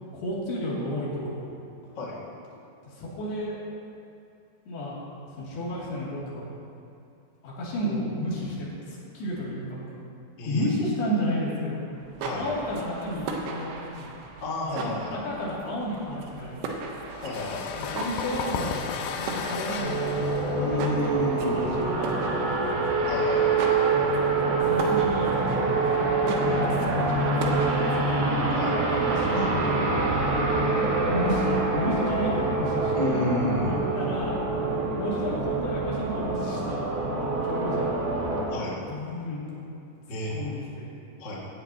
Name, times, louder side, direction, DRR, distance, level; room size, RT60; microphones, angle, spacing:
voice 1, 0.1-1.5 2.8-3.6 4.7-5.0 5.3-6.5 7.4-9.8 10.4-11.8 12.3-14.2 14.8-16.7 17.7-18.8 19.1-23.1 24.7-25.3 25.9-28.3 28.9-29.7 30.1-30.2 30.8-33.3 33.7-34.3 34.7-36.9 37.3-38.1 38.9-39.6 40.3-41.0, equal, 60° left, -7 dB, 4.7 m, -32 dB
sound 1, 11.9-29.3, right 4 dB, 90° right, 3.6 m, -38 dB
voice 2, 14.4-15.2 17.2-17.7 20.6-21.7 23.0-23.8 28.5-28.8 32.9-33.8 38.5-38.8 40.1-40.4 41.2-41.3, left 2 dB, 40° left, -6 dB, 1.6 m, -31 dB
sound 2, 17.1-22.6, left 6 dB, 85° left, 2.4 m, -34 dB
sound 3, 19.8-38.4, right 3 dB, 65° right, 1.6 m, -25 dB
17.5 x 13.5 x 2.9 m, 2.6 s
omnidirectional pair, 5.4 m